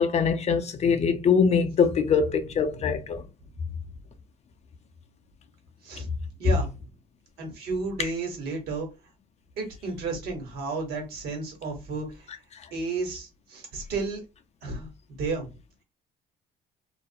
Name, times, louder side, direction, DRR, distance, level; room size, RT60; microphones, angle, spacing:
voice 1, 0.0-3.2, left 6 dB, 40° left, 0.4 m, -23 dB
voice 2, 2.7-3.3 5.8-6.1 6.4-6.9 7.4-8.9 9.6-12.3 12.7-14.2 14.6-15.6, right 3 dB, 70° right, 1.2 m, -33 dB
2.3 x 2.1 x 2.6 m
cardioid pair, 110°, 17 cm